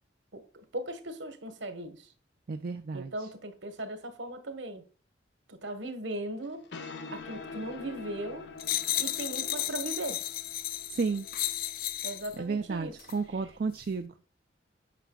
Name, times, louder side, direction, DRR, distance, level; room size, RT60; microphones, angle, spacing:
voice 1, 0.7-2.1 2.9-4.8 5.5-6.6 7.1-8.5 9.0-10.2 12.0-12.9, right 1 dB, 70° right, 1.3 m, -38 dB
voice 2, 2.5-3.1 10.9-11.3 12.4-14.1, right 4 dB, 50° right, 0.4 m, -32 dB
sound 1, 6.4-13.6, left 4 dB, 65° left, 0.8 m, -46 dB
sound 2, 8.6-12.4 13.0-13.2, left 13 dB, 45° left, 0.4 m, -33 dB
9.0 x 6.0 x 2.3 m
head